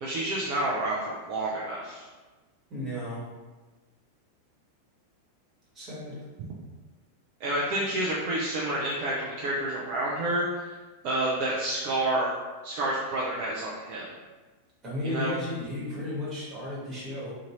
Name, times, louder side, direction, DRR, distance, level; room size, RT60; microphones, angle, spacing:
voice 1, 0.0-2.1 7.4-10.7 11.0-12.3 12.6-14.0 15.0-15.3, right 1 dB, 45° right, -5 dB, 0.5 m, -29 dB
voice 2, 2.7-3.2 5.7-6.2 14.8-17.3, left 1 dB, 25° right, -7 dB, 1.3 m, -34 dB
2.7 x 2.5 x 2.9 m, 1.2 s
figure-of-eight pair, 90°, 0 cm